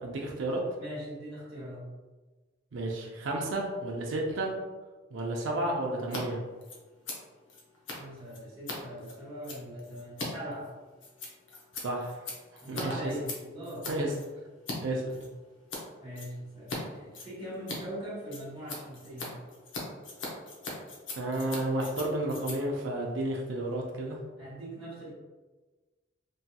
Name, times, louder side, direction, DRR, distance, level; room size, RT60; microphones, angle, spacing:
voice 1, 0.0-0.6 2.7-4.5 5.1-6.4 11.8-12.2 12.7-13.0 13.9-14.1 14.8-15.2 21.1-24.2, right 1 dB, 70° right, -1 dB, 0.5 m, -32 dB
voice 2, 0.8-1.8 7.9-10.7 12.6-13.9 16.0-19.3 24.4-25.1, equal, 10° right, -15 dB, 1.0 m, -41 dB
Scissors, 6.0-6.2 6.5-14.8 15.1-15.8 16.1-16.8 17.1-23.8, left 2 dB, 70° left, 0.7 m, -41 dB
3.0 x 2.8 x 2.2 m, 1.3 s
head